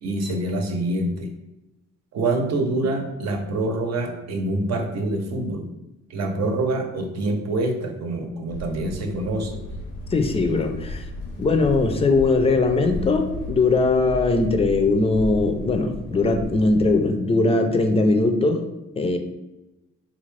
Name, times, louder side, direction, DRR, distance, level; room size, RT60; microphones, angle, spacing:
voice 1, 0.0-1.3 2.1-5.7 6.1-9.6, right 2 dB, 60° right, 3 dB, 0.8 m, -26 dB
sound 1, 8.5-16.9, left 1 dB, 80° left, 0.7 m, -35 dB
voice 2, 10.1-11.0 11.4-18.6 19.0-19.2, left 3 dB, 20° left, 6 dB, 0.4 m, -20 dB
3.4 x 2.6 x 3.2 m, 0.98 s
cardioid pair, 90°, 30 cm